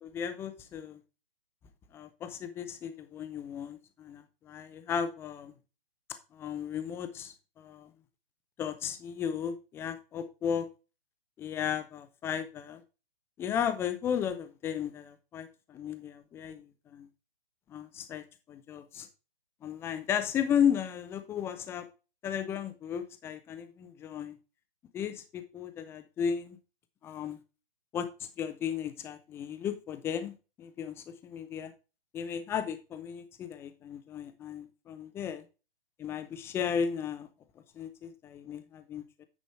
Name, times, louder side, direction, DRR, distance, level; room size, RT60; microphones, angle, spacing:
voice 1, 0.0-1.0 1.9-5.5 6.3-7.9 8.6-10.7 11.4-12.8 13.4-17.1 17.7-19.1 19.6-21.9 22.2-24.4 24.9-26.6 27.0-27.4 27.9-31.7 32.1-35.4 36.0-37.3 37.7-39.3, left 8 dB, 10° left, 9 dB, 0.6 m, -35 dB
9.5 x 5.3 x 4.4 m, 0.30 s
figure-of-eight pair, 135°, 29 cm